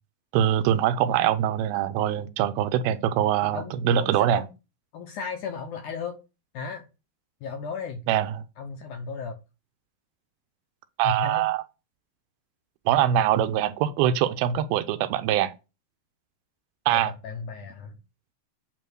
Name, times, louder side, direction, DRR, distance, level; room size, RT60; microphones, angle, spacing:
voice 1, 0.3-4.4 8.1-8.4 11.0-11.6 12.9-15.5 16.9-17.1, right 10 dB, 80° right, 2.4 m, -23 dB
voice 2, 3.4-4.5 4.9-6.2 6.5-6.9 7.4-8.0 8.6-9.4 11.0-11.5 16.9-18.0, left 5 dB, 75° left, 1.9 m, -35 dB
8.8 x 3.0 x 6.1 m
omnidirectional pair, 4.4 m